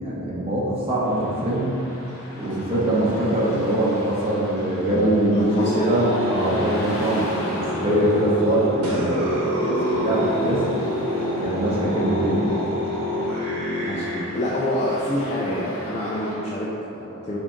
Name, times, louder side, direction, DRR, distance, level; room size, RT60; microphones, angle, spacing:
voice 1, 0.0-1.7 2.4-10.6 11.4-12.6, right 1 dB, 25° right, -7 dB, 0.8 m, -23 dB
Car passing by / Traffic noise roadway noise, 1.0-16.4, equal, 70° left, 1.0 m, -39 dB
voice 2, 5.3-6.1 13.8-17.4, left 1 dB, 30° left, -7 dB, 0.4 m, -27 dB
sound 1, 5.6-14.2, equal, 85° right, 1.2 m, -26 dB
sound 2, 8.9-13.4, left 3 dB, 55° right, 0.6 m, -38 dB
4.0 x 3.6 x 3.7 m, 2.9 s
head